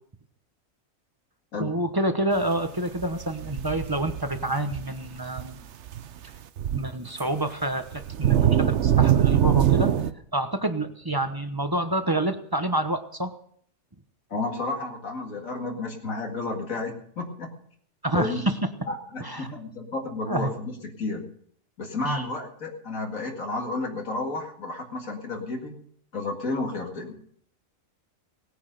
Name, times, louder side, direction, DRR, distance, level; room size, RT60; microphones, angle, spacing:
voice 1, 1.6-5.6 6.7-9.9 10.3-13.3 18.0-18.5 19.2-19.5 20.3-20.5 22.0-22.3, right 1 dB, 20° right, 8 dB, 1.0 m, -28 dB
sound 1, 3.0-5.1 5.4-5.5 5.9-6.0 6.3-6.9 7.2-7.3 7.9-10.1, right 10 dB, 60° right, 1.0 m, -23 dB
voice 2, 14.3-17.5 18.1-18.5 18.9-21.2 21.8-25.8 26.1-27.2, left 3 dB, 80° left, 1 dB, 2.4 m, -32 dB
18.5 x 9.5 x 6.6 m, 0.63 s
omnidirectional pair, 1.4 m